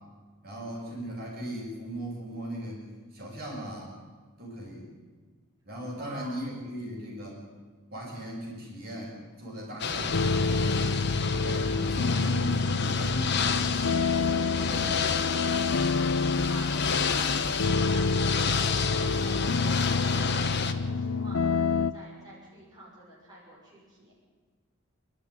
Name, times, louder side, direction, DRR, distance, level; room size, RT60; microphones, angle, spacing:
voice 1, 0.4-2.8 3.1-4.0 4.4-4.9 5.6-7.4 7.9-11.0 11.4-13.4 14.6-15.1, equal, 45° right, -3 dB, 6.8 m, -38 dB
voice 2, 5.9-6.5 16.4-24.1, right 1 dB, 20° right, -6 dB, 6.3 m, -48 dB
Ocean / Boat Water vehicle, 9.8-20.7, left 5 dB, 50° left, 1.3 m, -30 dB
sound 1, 10.1-21.9, left 4 dB, 70° left, 0.6 m, -28 dB
26.5 x 12.5 x 9.8 m, 1.5 s
head